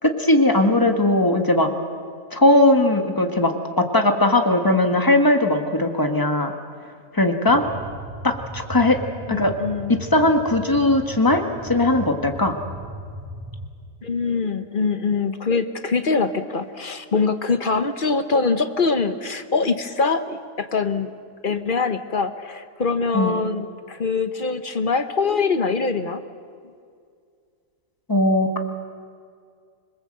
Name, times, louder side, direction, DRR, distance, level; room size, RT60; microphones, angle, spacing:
voice 1, 0.0-1.7 2.3-6.5 7.1-7.6 8.2-9.0 9.3-9.5 9.9-12.6 23.1-23.4 28.1-28.6, left 1 dB, 15° left, 5 dB, 1.5 m, -19 dB
sound 1, 7.5-13.7, right 1 dB, 10° right, 4.2 m, -37 dB
voice 2, 9.3-10.0 14.0-21.1 21.4-26.2, left 4 dB, 40° left, 10 dB, 0.9 m, -23 dB
26.5 x 21.0 x 7.8 m, 2.2 s
omnidirectional pair, 1.7 m